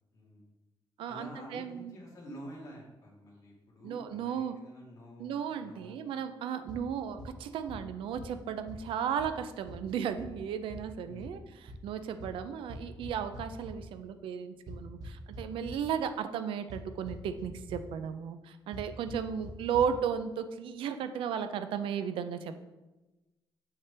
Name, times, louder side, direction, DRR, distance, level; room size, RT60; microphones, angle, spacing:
voice 1, 0.1-0.4 1.0-6.1 6.8-6.9 11.1-11.4 19.0-19.3, equal, 40° left, -3 dB, 1.9 m, -49 dB
voice 2, 1.0-2.0 3.8-4.5 5.2-11.4 11.8-22.6, right 8 dB, 80° right, 10 dB, 0.4 m, -35 dB
sound 1, 6.7-6.8 7.2-7.3 7.7-7.8 8.2-8.3 8.7-8.8 9.2-9.3 9.7-9.8 10.2-10.3 10.7-10.8 11.2-11.3 11.7-11.8 12.2-12.3 12.7-13.7 14.7-15.8 16.7-16.8 17.1-17.4 17.7-17.8 18.7-18.8 19.1-19.2 19.4-19.5 19.7-19.8, right 1 dB, 45° right, 1.4 m, -44 dB
6.6 x 5.6 x 3.3 m, 1.1 s
cardioid pair, 165°, 9 cm